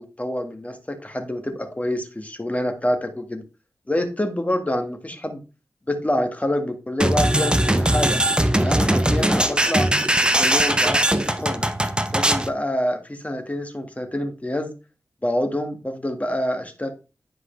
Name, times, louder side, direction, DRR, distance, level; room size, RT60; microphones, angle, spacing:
voice 1, 0.0-3.4 3.9-5.4 5.9-8.2 8.6-9.9 10.4-11.7 12.1-14.7 15.2-16.9, left 1 dB, 20° left, 5 dB, 1.7 m, -26 dB
sound 1, 7.0-12.5, right 1 dB, 15° right, 0.7 m, -20 dB
10.0 x 4.7 x 3.3 m, 0.31 s
cardioid pair, 50°, 7 cm